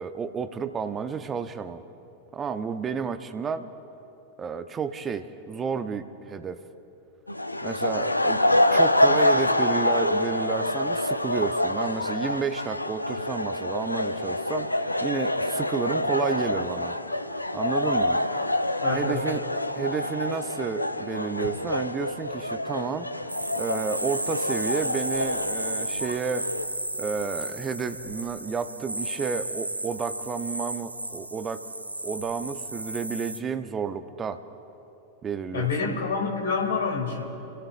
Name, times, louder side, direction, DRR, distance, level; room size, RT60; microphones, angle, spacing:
voice 1, 0.0-1.8 2.3-3.7 4.4-6.6 7.6-16.9 17.5-18.2 18.9-19.4 19.7-23.1 23.6-26.5 27.0-31.6 32.0-34.4 35.2-36.0, right 6 dB, 20° right, 10 dB, 0.8 m, -31 dB
sound 1, 7.3-26.6, left 1 dB, 85° left, 0.5 m, -26 dB
voice 2, 18.8-19.2 35.5-37.2, left 5 dB, 65° left, 1 dB, 2.5 m, -27 dB
sound 2, 23.3-33.4, right 1 dB, 85° right, 0.7 m, -34 dB
29.5 x 16.5 x 2.5 m, 2.9 s
figure-of-eight pair, 90°, 0 cm